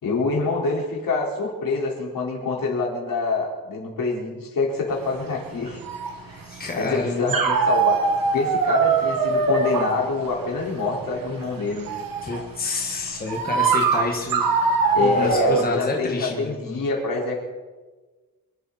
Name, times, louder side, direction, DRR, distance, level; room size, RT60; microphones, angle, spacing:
voice 1, 0.0-5.8 6.3-6.5 6.8-8.0 8.3-11.9 14.9-17.4, left 3 dB, 75° left, -2 dB, 4.8 m, -26 dB
sound 1, 4.9-15.6, right 4 dB, 85° right, 1.9 m, -23 dB
voice 2, 6.4-7.3 12.2-14.5 15.0-16.6, left 3 dB, 25° left, 0 dB, 1.7 m, -28 dB
26.5 x 12.0 x 4.3 m, 1.3 s
wide cardioid pair, 170°, 34 cm